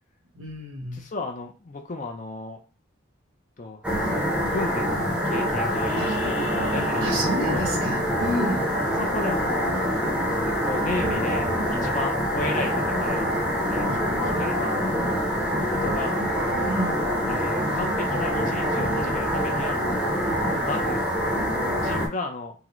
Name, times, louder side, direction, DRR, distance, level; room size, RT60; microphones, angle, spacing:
voice 1, 0.3-1.0 5.9-6.1 7.0-8.7 16.7-17.0, equal, 85° right, -1 dB, 1.2 m, -29 dB
voice 2, 0.9-2.6 3.6-7.7 9.0-9.7 10.4-13.3 13.7-15.0 15.7-16.1 17.3-19.8 20.2-21.1 21.8-22.5, left 3 dB, 40° left, 3 dB, 0.5 m, -34 dB
sound 1, 3.8-22.1, equal, 5° right, 0.7 m, -25 dB
sound 2, 5.7-8.0 9.8-9.9, left 3 dB, 85° left, 0.6 m, -39 dB
3.7 x 2.1 x 3.0 m, 0.35 s
head